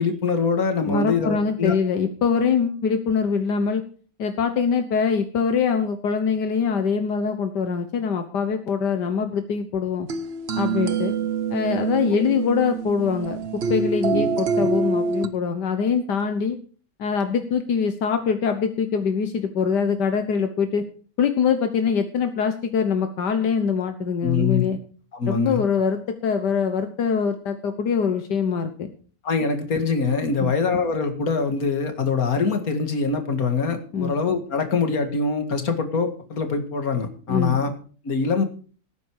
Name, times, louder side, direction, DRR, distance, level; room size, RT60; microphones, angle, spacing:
voice 1, 0.0-1.7 12.0-12.2 14.1-14.7 24.2-24.6 25.1-25.6 29.2-37.7 38.0-38.4, left 4 dB, 60° left, 6 dB, 2.5 m, -24 dB
voice 2, 0.9-3.8 4.2-10.1 10.5-11.1 11.5-16.6 17.0-20.8 21.2-24.8 25.3-28.9 30.4-30.5 33.9-34.1 37.3-37.6, left 6 dB, 80° left, 7 dB, 1.8 m, -23 dB
sound 1, 10.1-15.3, right 5 dB, 45° right, 0.9 m, -25 dB
17.5 x 9.6 x 4.8 m, 0.41 s
omnidirectional pair, 1.8 m